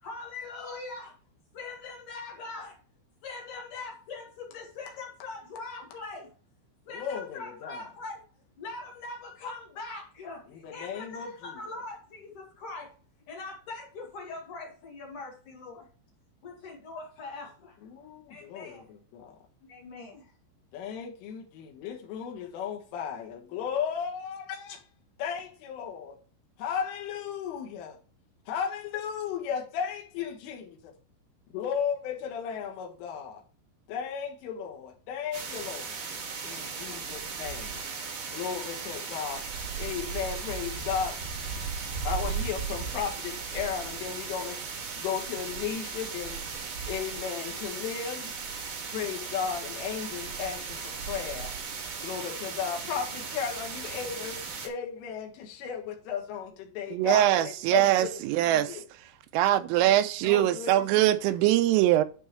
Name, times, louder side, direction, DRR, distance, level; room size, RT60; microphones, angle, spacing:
voice 1, 0.0-1.1 1.5-2.8 3.2-6.3 6.9-8.2 8.6-12.9 13.3-15.9 16.4-17.8 18.3-18.8 19.7-20.3, left 3 dB, 55° left, 2.7 m, -41 dB
voice 2, 6.9-7.9 10.5-11.6 17.8-19.4 20.7-24.8 25.2-26.2 26.6-28.0 28.5-30.9 31.5-33.4 33.9-36.0 36.4-37.8 38.3-39.4 39.8-41.2 42.1-44.6 45.0-46.4 46.9-48.3 48.9-51.5 52.0-58.1 58.4-58.8 60.2-60.7 61.0-61.4, left 7 dB, 75° left, 3.9 m, -35 dB
sound 1, 35.3-54.7, right 5 dB, 65° right, 1.6 m, -36 dB
voice 3, 56.9-58.8 59.3-62.0, right 13 dB, 85° right, 3.1 m, -23 dB
11.0 x 5.5 x 3.1 m
omnidirectional pair, 5.9 m